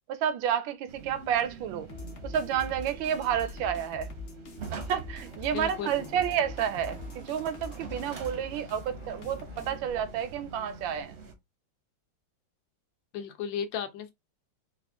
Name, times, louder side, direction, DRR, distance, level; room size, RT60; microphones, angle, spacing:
voice 1, 0.1-1.9 2.2-4.1 4.7-11.1, right 9 dB, 80° right, 1.3 m, -30 dB
sound 1, 0.9-11.3, right 5 dB, 55° right, 0.7 m, -45 dB
sound 2, 1.9-9.9, left 2 dB, 50° left, 0.9 m, -43 dB
voice 2, 5.5-6.1 13.1-14.1, left 8 dB, 75° left, 1.4 m, -35 dB
4.2 x 2.4 x 3.4 m
omnidirectional pair, 2.1 m